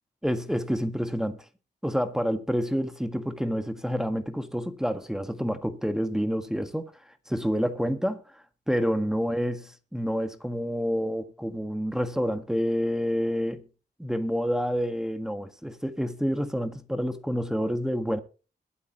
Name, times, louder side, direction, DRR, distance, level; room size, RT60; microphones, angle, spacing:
voice 1, 0.2-1.4 1.8-6.9 7.3-13.6 14.0-18.2, equal, 5° right, 1.5 m, -28 dB
21.5 x 8.4 x 2.9 m
wide cardioid pair, 100°, 18 cm